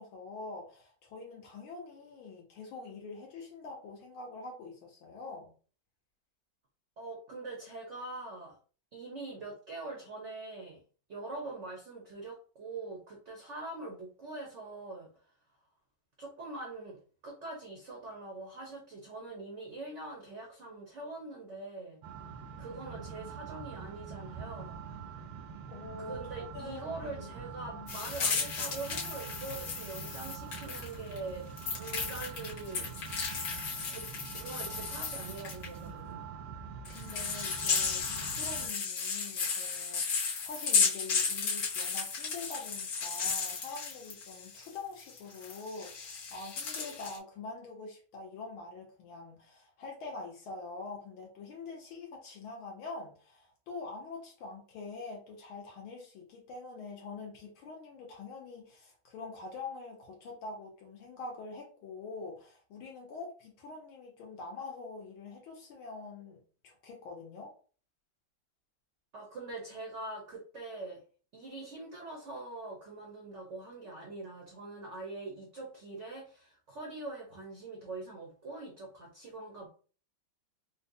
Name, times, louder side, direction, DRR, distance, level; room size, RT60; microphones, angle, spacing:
voice 1, 0.0-5.5 25.7-27.4 27.7-27.9 36.9-67.5, left 3 dB, 75° left, -1 dB, 1.6 m, -45 dB
voice 2, 7.0-8.6 8.9-10.8 11.1-15.1 16.2-22.0 22.6-24.8 26.0-32.9 33.9-34.1 34.3-36.2 69.1-71.0 71.3-79.7, right 2 dB, 60° right, -1 dB, 0.7 m, -43 dB
sound 1, 22.0-38.7, right 6 dB, 85° right, 1.5 m, -45 dB
sound 2, 27.9-31.2 31.6-35.7 36.8-44.7 45.0-47.2, left 5 dB, 55° left, 1.1 m, -34 dB
4.4 x 2.2 x 2.6 m, 0.39 s
omnidirectional pair, 2.4 m